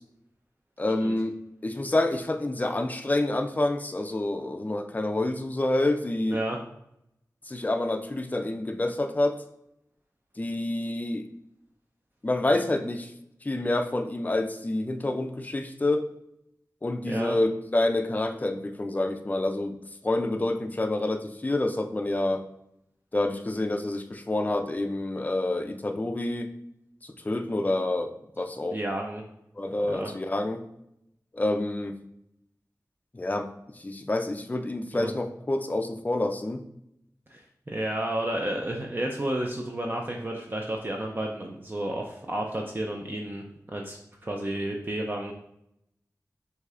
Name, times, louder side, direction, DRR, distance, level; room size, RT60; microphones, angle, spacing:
voice 1, 0.8-6.4 7.5-9.4 10.4-11.3 12.2-13.1 13.4-16.1 16.8-19.8 20.0-22.5 23.1-26.5 27.0-28.8 29.6-30.6 31.3-31.9 33.1-36.6, left 2 dB, 25° left, 6 dB, 0.4 m, -28 dB
voice 2, 6.3-6.6 17.1-17.4 28.7-29.2 29.9-30.1 35.0-35.1 37.3-45.3, right 1 dB, 30° right, 0 dB, 0.5 m, -31 dB
6.4 x 2.7 x 2.5 m, 0.79 s
wide cardioid pair, 50°, 7 cm